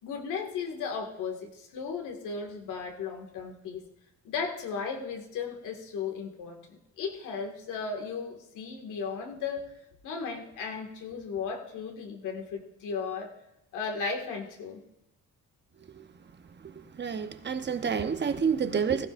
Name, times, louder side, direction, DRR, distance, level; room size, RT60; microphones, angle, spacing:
voice 1, 0.0-3.8 4.2-9.7 10.0-13.3 13.7-14.8, left 5 dB, 90° left, 2.1 m, -35 dB
voice 2, 16.6-19.1, right 6 dB, 35° right, 1.0 m, -29 dB
16.5 x 15.5 x 2.6 m
cardioid pair, 90°, 30 cm